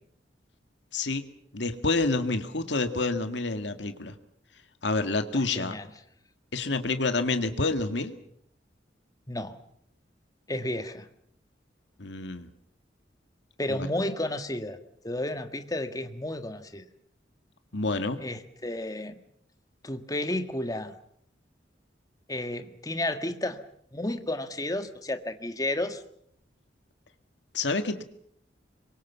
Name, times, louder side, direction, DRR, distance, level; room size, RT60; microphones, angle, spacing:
voice 1, 0.9-1.3 1.5-4.1 4.8-5.8 6.5-8.1 12.0-12.5 13.8-13.9 17.7-18.2 27.5-28.0, left 3 dB, 75° left, 8 dB, 2.0 m, -28 dB
voice 2, 5.5-5.9 9.3-9.6 10.5-11.1 13.6-14.8 15.0-16.9 18.2-19.1 19.8-20.9 22.3-23.6 23.9-26.0, left 1 dB, 20° left, 8 dB, 1.6 m, -32 dB
25.5 x 23.0 x 7.1 m, 0.69 s
head